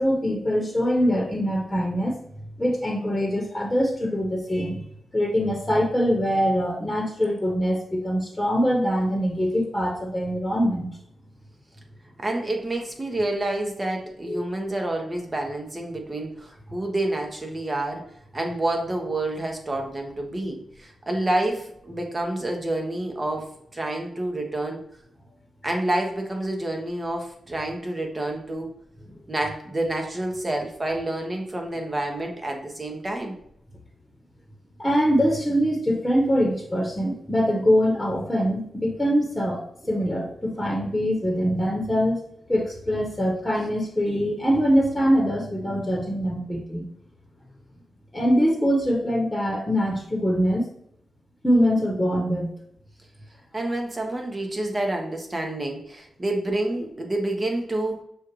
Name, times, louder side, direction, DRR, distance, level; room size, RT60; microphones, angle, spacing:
voice 1, 0.0-2.1 2.6-4.8 5.1-10.9 14.3-14.4 34.8-39.6 39.9-42.2 42.5-46.9 48.1-50.7 51.4-52.5, equal, 10° left, -1 dB, 1.2 m, -23 dB
voice 2, 12.2-18.0 18.3-24.8 25.6-28.7 29.3-33.3 53.5-58.0, right 1 dB, 30° right, 2 dB, 1.1 m, -28 dB
6.3 x 2.5 x 3.1 m, 0.71 s
cardioid pair, 50°, 0 cm